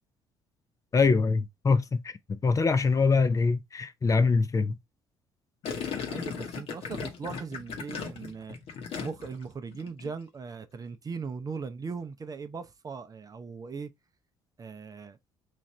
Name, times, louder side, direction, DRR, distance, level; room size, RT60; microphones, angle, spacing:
voice 1, 0.9-4.8, left 4 dB, 30° left, 0.5 m, -24 dB
Gurgling, 5.6-9.4 9.7-10.1, left 6 dB, 60° left, 0.9 m, -36 dB
voice 2, 6.0-8.6 9.0-13.9 14.6-15.2, right 5 dB, 35° right, 0.6 m, -39 dB
3.2 x 2.5 x 4.2 m
hypercardioid pair, 60°, 11 cm